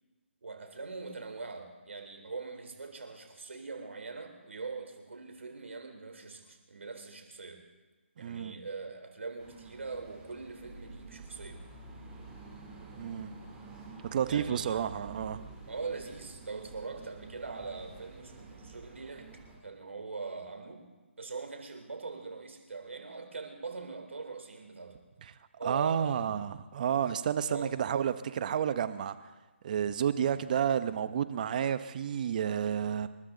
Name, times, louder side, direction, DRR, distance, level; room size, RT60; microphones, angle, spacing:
voice 1, 0.4-7.6 8.2-11.6 14.3-14.9 15.7-20.9 21.2-25.0 25.6-26.3 27.5-27.7, right 4 dB, 75° right, 5 dB, 3.8 m, -42 dB
voice 2, 8.2-8.5 13.0-13.3 14.1-15.4 25.2-25.3 25.6-29.2 29.6-33.1, right 8 dB, 40° right, 12 dB, 0.9 m, -31 dB
sound 1, 9.4-19.6, right 3 dB, 10° right, 3.3 m, -49 dB
28.0 x 12.5 x 4.0 m, 1.2 s
figure-of-eight pair, 150°, 7 cm